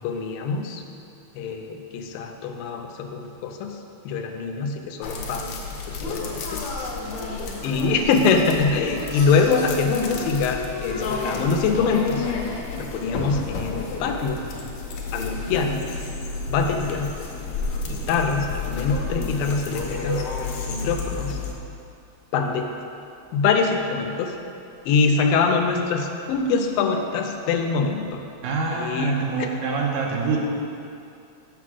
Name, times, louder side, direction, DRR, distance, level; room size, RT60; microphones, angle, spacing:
voice 1, 0.0-0.8 1.4-6.7 7.6-12.3 12.8-14.4 15.1-15.9 16.5-17.2 17.9-20.3 20.6-21.4 22.3-22.7 23.3-24.4 24.9-28.2 28.7-29.5, left 4 dB, 90° left, 4 dB, 2.4 m, -24 dB
sound 1, 5.0-21.6, left 3 dB, 70° left, 1.8 m, -31 dB
voice 2, 6.5-6.9 9.1-9.3 28.4-30.4, right 4 dB, 85° right, -2 dB, 2.8 m, -26 dB
6.7 x 6.0 x 6.2 m, 2.6 s
omnidirectional pair, 4.0 m